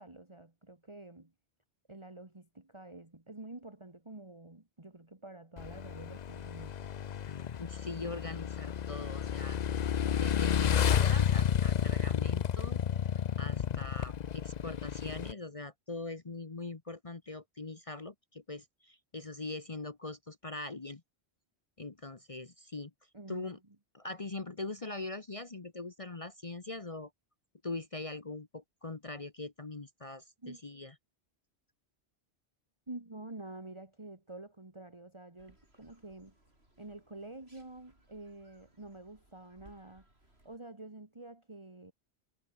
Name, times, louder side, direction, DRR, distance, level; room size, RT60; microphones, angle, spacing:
voice 1, 0.0-1.3 1.9-6.9 23.1-23.5 30.4-30.6 32.9-36.3 36.8-40.1 40.4-41.9, right 2 dB, 25° right, 2.3 m, -48 dB
Motorcycle / Engine, 5.6-15.3, left 8 dB, 50° left, 0.6 m, -31 dB
voice 2, 7.6-9.6 10.1-12.8 13.4-21.0 21.8-22.9 23.3-23.6 23.9-27.1 27.6-30.9, left 2 dB, 30° left, 1.2 m, -42 dB
sound 1, 35.4-40.6, right 1 dB, 65° right, 7.9 m, -65 dB
omnidirectional pair, 1.1 m